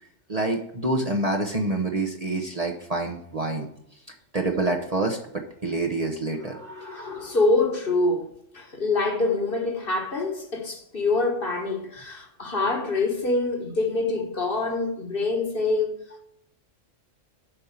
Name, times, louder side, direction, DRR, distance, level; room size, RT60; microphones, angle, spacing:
voice 1, 0.3-3.7 4.3-6.6, right 2 dB, 35° right, 0.9 m, -27 dB
voice 2, 6.5-16.2, left 3 dB, 45° left, 1.5 m, -26 dB
8.0 x 5.3 x 7.2 m
omnidirectional pair, 1.3 m